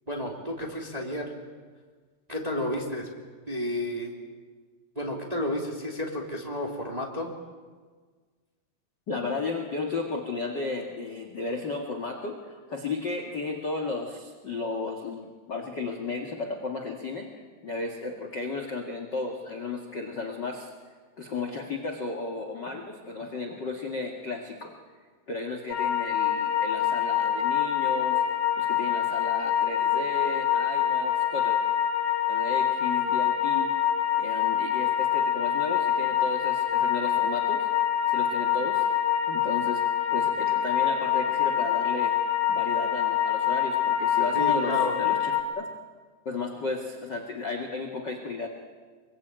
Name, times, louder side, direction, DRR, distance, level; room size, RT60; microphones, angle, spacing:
voice 1, 0.1-1.3 2.3-3.1 3.5-4.1 4.9-7.3 44.3-45.0, left 1 dB, 10° right, 0 dB, 2.3 m, -31 dB
voice 2, 9.1-20.7 21.2-24.7 25.3-28.2 28.6-31.6 32.3-33.7 34.2-37.7 38.1-38.8 39.3-39.8 40.1-42.1 42.5-45.6 46.2-48.5, left 3 dB, 40° left, 2 dB, 1.6 m, -34 dB
sound 1, 25.7-45.4, left 10 dB, 80° left, 3.7 m, -25 dB
25.0 x 23.5 x 9.0 m, 1.5 s
omnidirectional pair, 5.0 m